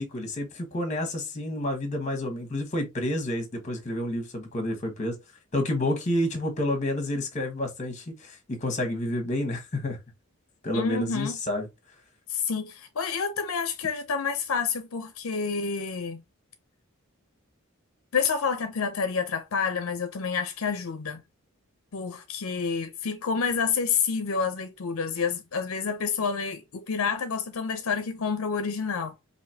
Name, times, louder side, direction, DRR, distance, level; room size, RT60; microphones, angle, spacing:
voice 1, 0.0-5.2 5.5-10.0 10.6-11.7, left 1 dB, 35° left, 1.2 m, -29 dB
voice 2, 10.7-11.4 12.3-16.2 18.1-21.2 21.9-29.1, left 5 dB, 75° left, 0.6 m, -29 dB
5.0 x 2.7 x 2.8 m
head